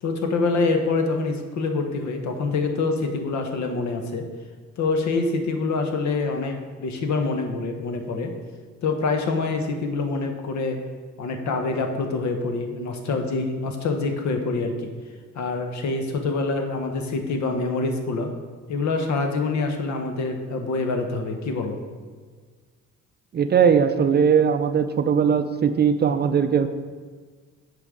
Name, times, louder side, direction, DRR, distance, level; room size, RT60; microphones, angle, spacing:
voice 1, 0.0-4.3 4.8-8.3 8.8-10.8 11.2-14.9 15.3-18.3 18.7-21.8, left 3 dB, 65° left, 5 dB, 1.0 m, -25 dB
voice 2, 23.3-26.7, right 7 dB, 35° right, 9 dB, 0.4 m, -19 dB
8.1 x 5.2 x 3.7 m, 1.5 s
cardioid pair, 90°, 30 cm